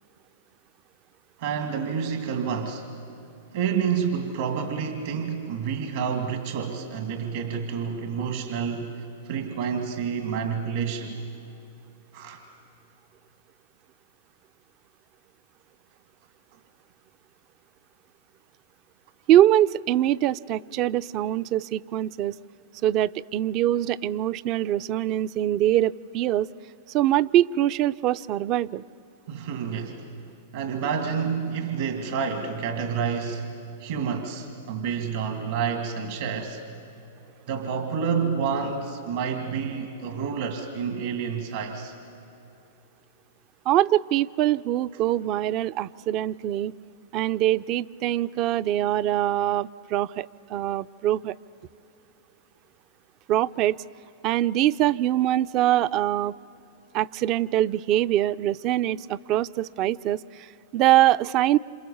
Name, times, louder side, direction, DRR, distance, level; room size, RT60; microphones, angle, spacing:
voice 1, 1.4-2.9 3.5-11.2 12.1-12.4 29.3-30.1 30.5-33.5 33.8-36.6 37.5-41.9, right 6 dB, 70° right, 5 dB, 2.3 m, -29 dB
voice 2, 19.3-22.3 22.8-26.5 26.9-28.8 43.7-46.7 47.1-51.3 53.3-53.8 54.2-56.3 56.9-61.6, right 13 dB, 40° right, 16 dB, 0.5 m, -23 dB
28.5 x 27.5 x 7.2 m, 2.9 s
hypercardioid pair, 110°, 0 cm